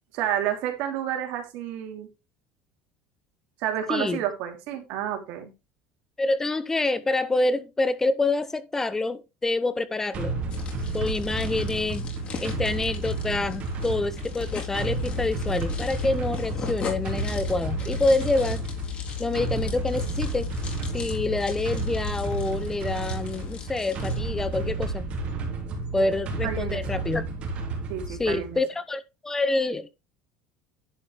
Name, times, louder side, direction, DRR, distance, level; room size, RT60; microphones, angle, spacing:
voice 1, 0.1-2.1 3.6-5.5 26.0-26.1 26.4-27.0 27.9-28.6, right 10 dB, 70° right, 2.9 m, -30 dB
voice 2, 3.9-4.2 6.2-10.3 10.9-12.1 12.4-18.6 19.2-20.5 20.9-25.0 25.9-27.2 28.1-29.9, left 2 dB, 15° left, 0.8 m, -27 dB
sound 1, 10.1-28.5, right 3 dB, 45° right, 3.4 m, -32 dB
sound 2, 10.5-24.2, left 5 dB, 40° left, 4.1 m, -41 dB
sound 3, 11.3-24.7, left 16 dB, 70° left, 2.1 m, -39 dB
11.0 x 5.2 x 4.5 m
supercardioid pair, 115°, 3 cm